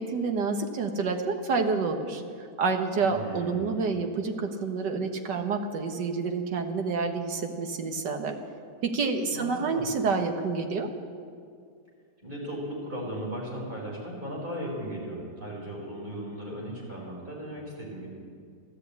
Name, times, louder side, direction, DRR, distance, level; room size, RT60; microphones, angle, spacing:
voice 1, 0.0-8.4 8.8-10.9, right 4 dB, 85° right, 5 dB, 1.9 m, -28 dB
voice 2, 3.0-3.6 9.3-9.8 12.2-18.1, right 1 dB, 30° right, -4 dB, 4.7 m, -37 dB
13.5 x 12.5 x 8.4 m, 2.2 s
omnidirectional pair, 1.8 m